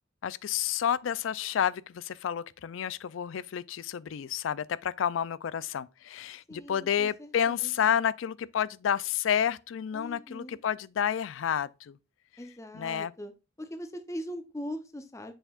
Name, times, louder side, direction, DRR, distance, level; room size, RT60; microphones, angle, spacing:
voice 1, 0.2-12.0 12.7-13.1, left 8 dB, 75° left, 0.4 m, -30 dB
voice 2, 6.5-8.0 9.9-10.6 12.4-13.3 13.6-15.3, equal, 15° left, 0.7 m, -41 dB
7.0 x 5.6 x 2.4 m
head